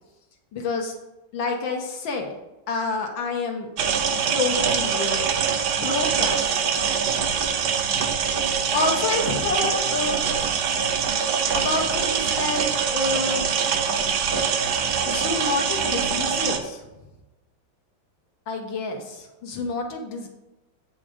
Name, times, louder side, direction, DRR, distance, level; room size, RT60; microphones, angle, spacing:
voice 1, 0.5-1.0 1.3-2.3 2.7-3.7 4.3-5.3 5.8-6.7 8.7-10.3 11.6-13.5 15.1-16.8 18.5-20.3, left 3 dB, 75° left, 2 dB, 1.7 m, -28 dB
sound 1, 3.8-16.6, right 6 dB, 65° right, 1.1 m, -24 dB
7.5 x 4.9 x 4.9 m, 1.0 s
omnidirectional pair, 2.1 m